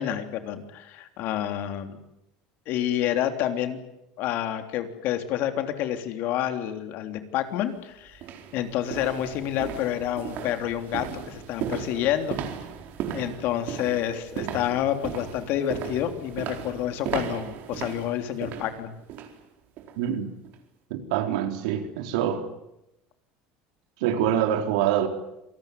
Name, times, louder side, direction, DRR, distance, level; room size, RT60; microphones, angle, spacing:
voice 1, 0.0-2.0 2.6-3.8 4.2-8.2 8.5-12.4 13.1-18.9, left 11 dB, 60° left, 3.4 m, -28 dB
sound 1, 7.4-7.6 8.1-19.4 19.8-20.0 20.4-20.5, right 8 dB, 60° right, 4.3 m, -36 dB
voice 2, 20.0-20.3 20.9-22.4 24.0-25.1, right 10 dB, 80° right, 3.8 m, -25 dB
27.0 x 19.0 x 9.5 m
supercardioid pair, 105°, 4 cm